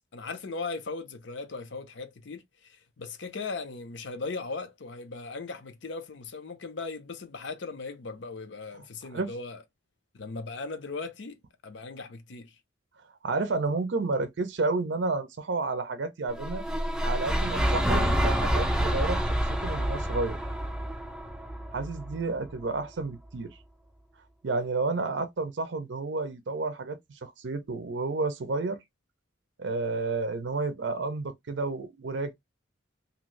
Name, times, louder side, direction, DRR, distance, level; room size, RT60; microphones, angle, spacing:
voice 1, 0.1-9.6 10.1-11.4 11.6-12.5, left 3 dB, 65° left, 0.6 m, -38 dB
voice 2, 13.2-16.6 17.0-20.4 21.7-23.6 24.4-28.8 29.6-32.3, right 3 dB, 65° right, 0.5 m, -31 dB
sound 1, 16.3-22.5, equal, 5° right, 0.4 m, -28 dB
2.8 x 2.5 x 3.0 m
head